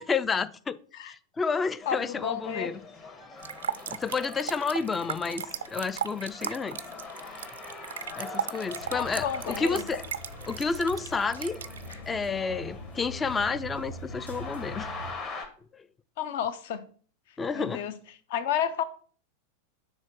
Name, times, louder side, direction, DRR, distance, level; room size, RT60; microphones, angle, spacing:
voice 1, 0.0-0.8 1.1-2.8 3.9-5.4 5.7-6.8 8.2-10.0 10.5-11.6 12.1-14.9 17.4-17.8, left 4 dB, 15° left, 0.4 m, -30 dB
sound 1, 1.8-15.4, left 4 dB, 35° left, 1.6 m, -44 dB
voice 2, 1.9-2.7 8.9-9.8 16.2-16.8 17.5-18.0 18.3-18.8, left 9 dB, 50° left, 0.7 m, -31 dB
sound 2, 3.4-11.9, right 8 dB, 65° right, 0.3 m, -37 dB
sound 3, 8.8-15.1, left 1 dB, 80° left, 1.2 m, -43 dB
6.3 x 3.8 x 6.2 m
figure-of-eight pair, 90°, 0 cm